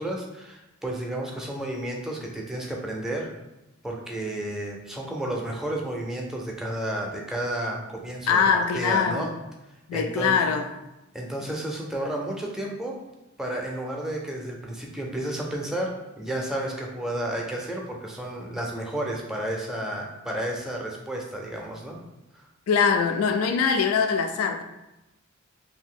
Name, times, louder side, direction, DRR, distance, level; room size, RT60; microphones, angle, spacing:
voice 1, 0.0-3.3 3.8-9.3 9.9-10.4 11.1-13.0 13.4-22.0, right 1 dB, ahead, -1 dB, 0.4 m, -32 dB
voice 2, 8.3-9.3 9.9-10.7 22.7-24.6, left 6 dB, 85° left, 6 dB, 0.3 m, -22 dB
2.7 x 2.5 x 3.6 m, 0.97 s
head